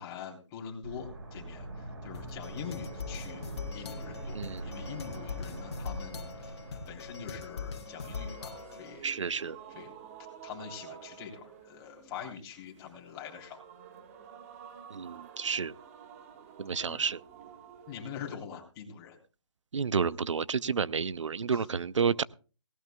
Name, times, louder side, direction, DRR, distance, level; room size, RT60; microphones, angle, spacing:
voice 1, 0.0-3.4 3.7-9.1 9.7-9.9 10.4-13.6 16.9-17.0 17.9-19.2 21.5-21.6, left 7 dB, 20° left, 0 dB, 3.4 m, -44 dB
sound 1, 0.8-9.6 9.8-9.9, right 1 dB, 55° right, 4.9 m, -44 dB
sound 2, 2.1-9.0, left 6 dB, 60° left, 2.0 m, -42 dB
sound 3, 2.1-18.3, right 8 dB, 30° right, 1.5 m, -52 dB
voice 2, 4.3-4.7 9.0-9.6 14.9-15.7 16.6-17.2 19.7-22.2, right 6 dB, 80° right, 19 dB, 0.7 m, -30 dB
18.0 x 17.5 x 2.3 m, 0.35 s
hypercardioid pair, 150°, 15 cm